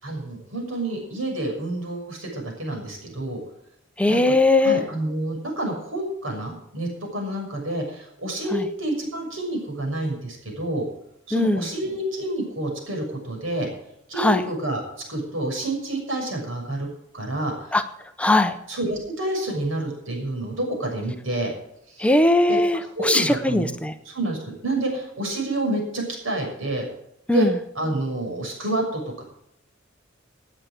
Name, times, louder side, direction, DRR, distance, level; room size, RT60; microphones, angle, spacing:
voice 1, 0.0-3.4 4.1-4.3 4.6-10.9 11.3-13.7 14.1-14.8 15.1-16.9 17.1-17.5 18.7-21.5 22.0-22.1 22.5-22.6 22.9-23.8 24.0-26.9 27.3-27.5 27.7-29.2, right 1 dB, 80° right, 1 dB, 6.5 m, -28 dB
voice 2, 4.0-4.8 8.5-8.6 11.3-11.6 14.2-14.4 17.7-17.8 18.2-18.6 22.0-23.9 27.3-27.5, left 2 dB, 5° left, 9 dB, 0.7 m, -19 dB
18.0 x 9.0 x 5.1 m, 0.76 s
head